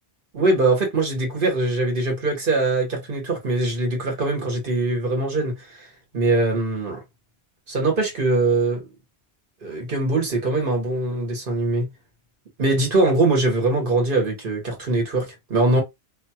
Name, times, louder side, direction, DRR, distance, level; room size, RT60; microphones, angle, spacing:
voice 1, 0.3-5.9 6.1-7.0 7.7-8.9 9.6-11.9 12.6-15.8, right 2 dB, 55° right, 1.3 m, -22 dB
2.6 x 2.3 x 2.8 m
omnidirectional pair, 1.1 m